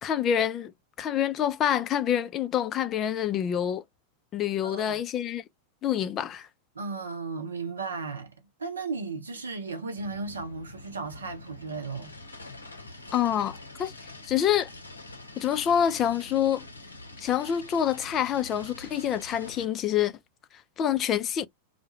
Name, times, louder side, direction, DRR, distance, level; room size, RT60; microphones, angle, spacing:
voice 1, 0.0-0.7 1.0-3.8 4.3-5.4 5.8-6.5 13.1-13.9 14.3-14.7 15.4-16.6 17.2-20.1 20.8-21.5, left 9 dB, 30° left, 0.4 m, -26 dB
voice 2, 4.6-5.0 6.7-8.3 8.6-12.1, right 4 dB, 75° right, 0.6 m, -35 dB
sound 1, 10.0-19.6, left 2 dB, 80° left, 0.7 m, -45 dB
2.2 x 2.1 x 2.9 m
figure-of-eight pair, 90°, 0 cm